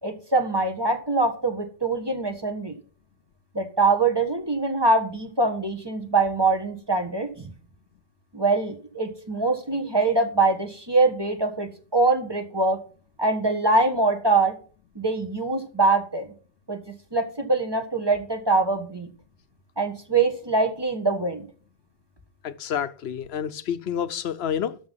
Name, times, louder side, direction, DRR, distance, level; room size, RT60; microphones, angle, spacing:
voice 1, 0.0-2.7 3.5-7.5 8.3-12.8 13.2-14.6 14.9-16.3 16.7-16.8 17.1-19.1 19.8-21.4, right 3 dB, 25° right, 1.5 m, -23 dB
voice 2, 22.4-24.8, left 8 dB, 75° left, 0.9 m, -29 dB
12.5 x 5.6 x 5.6 m
omnidirectional pair, 1.1 m